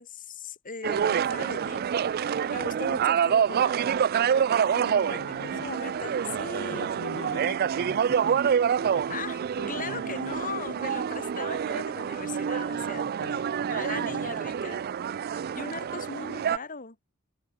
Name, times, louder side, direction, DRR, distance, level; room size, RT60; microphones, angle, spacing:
voice 1, 0.0-1.8 2.2-4.0 5.1-6.9 9.1-9.4 9.7-13.1 13.6-14.9 15.3-17.0, left 4 dB, 40° left, 3.0 m, -39 dB
sound 1, 0.8-16.6, right 8 dB, 45° right, 0.3 m, -27 dB
voice 2, 4.5-5.7 6.7-10.6 12.9-14.7, left 2 dB, 90° left, 2.7 m, -44 dB
head